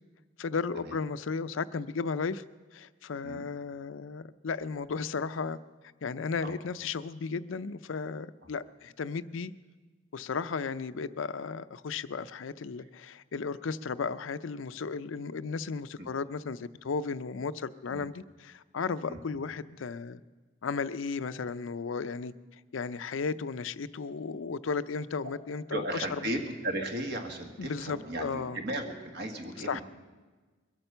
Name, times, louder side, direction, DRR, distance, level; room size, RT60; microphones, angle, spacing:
voice 1, 0.4-2.4 2.7-5.6 6.0-9.5 10.1-20.2 20.6-22.3 22.7-26.2 27.6-28.6 29.6-29.8, left 5 dB, 80° left, 13 dB, 0.5 m, -34 dB
voice 2, 25.7-29.8, right 1 dB, 60° right, 4 dB, 1.8 m, -35 dB
22.5 x 8.9 x 6.8 m, 1.3 s
head